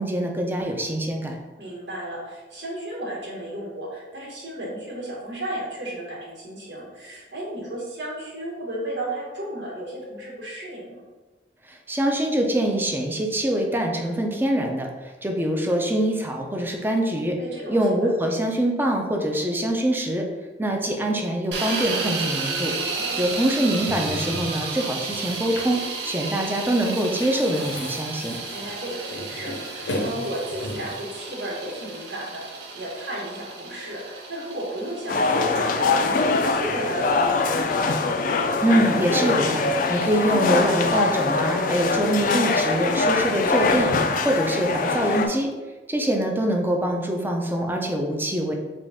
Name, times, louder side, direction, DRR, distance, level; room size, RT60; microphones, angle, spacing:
voice 1, 0.0-1.4 11.7-17.4 17.7-20.3 20.6-22.7 23.2-28.4 38.6-39.6 39.9-45.5 45.9-48.5, right 1 dB, 10° right, 2 dB, 0.5 m, -24 dB
voice 2, 1.6-11.0 17.4-17.8 22.7-23.4 28.5-38.0, right 1 dB, 85° right, -5 dB, 1.4 m, -34 dB
sound 1, 21.5-39.5, right 4 dB, 70° right, 0.6 m, -33 dB
sound 2, 22.1-22.2 23.6-24.6 25.1-25.9 26.2-26.4 26.6-31.0, left 1 dB, 90° left, 0.8 m, -35 dB
sound 3, 35.1-45.3, left 3 dB, 50° left, 0.4 m, -23 dB
5.0 x 2.4 x 3.5 m, 1.2 s
head